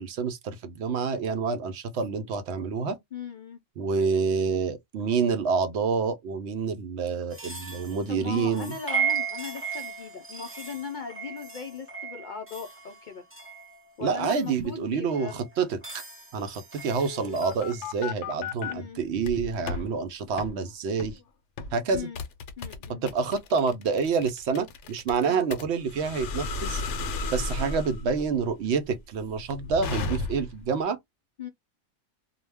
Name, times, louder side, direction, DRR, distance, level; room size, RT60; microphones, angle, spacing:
voice 1, 0.0-3.0 3.8-8.7 14.0-16.0 16.3-21.2 21.7-22.1 22.9-26.8 27.3-31.0, right 5 dB, 70° right, 0.8 m, -28 dB
voice 2, 3.1-3.6 7.4-7.7 8.1-13.2 14.0-15.5 18.7-19.0 21.9-22.2 22.6-23.0 25.2-25.5 31.4-31.5, left 7 dB, 60° left, 0.5 m, -38 dB
sound 1, 7.3-14.4 15.1-18.0, right 6 dB, 20° right, 0.4 m, -36 dB
sound 2, 17.0-18.7 19.2-19.9 20.4-20.5 21.0-21.2 21.6-30.6, left 3 dB, 75° left, 0.9 m, -34 dB
2.2 x 2.1 x 3.3 m
omnidirectional pair, 1.2 m